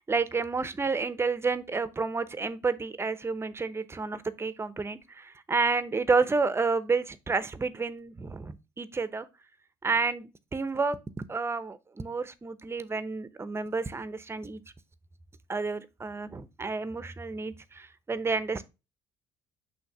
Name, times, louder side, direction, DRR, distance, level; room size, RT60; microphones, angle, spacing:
voice 1, 0.0-9.3 9.8-11.0 11.3-14.6 15.5-18.6, right 4 dB, 20° right, 0.8 m, -30 dB
6.2 x 2.9 x 5.4 m
hypercardioid pair, 70°, 11 cm